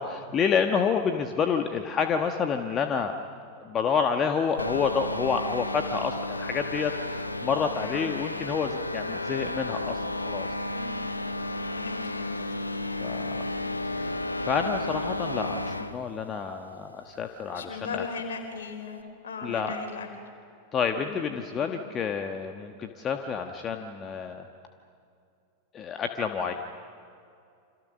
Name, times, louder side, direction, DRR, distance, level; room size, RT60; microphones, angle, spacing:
voice 1, 0.0-3.1 3.6-10.5 13.0-13.4 13.9-14.1 14.4-18.0 19.4-19.7 20.7-24.4 25.7-26.5, left 6 dB, 25° left, 5 dB, 1.3 m, -29 dB
sound 1, 4.6-16.0, left 2 dB, 85° left, 1.0 m, -32 dB
voice 2, 10.7-11.2 11.7-12.5 17.4-20.1 20.9-21.3 21.7-21.8, left 5 dB, 65° left, 4 dB, 4.4 m, -38 dB
28.5 x 26.0 x 6.5 m, 2.5 s
figure-of-eight pair, 90°, 0 cm